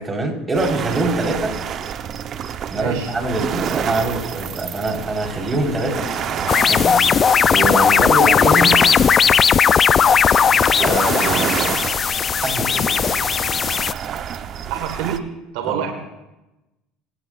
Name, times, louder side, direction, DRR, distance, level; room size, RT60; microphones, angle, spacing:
voice 1, 0.0-1.6 2.7-6.1 6.7-8.8 10.8-11.7 12.4-12.9 15.7-15.8, right 2 dB, 20° right, 1 dB, 4.2 m, -24 dB
sound 1, 0.5-15.2, right 8 dB, 45° right, 0.9 m, -28 dB
voice 2, 2.7-3.1 7.9-8.0 14.7-15.9, right 9 dB, 80° right, 5 dB, 1.7 m, -27 dB
sound 2, 5.9-13.7, left 6 dB, 15° left, 6.2 m, -39 dB
sound 3, 6.5-13.9, left 7 dB, 35° left, 0.4 m, -16 dB
23.5 x 16.5 x 2.5 m, 0.97 s
supercardioid pair, 95°, 0 cm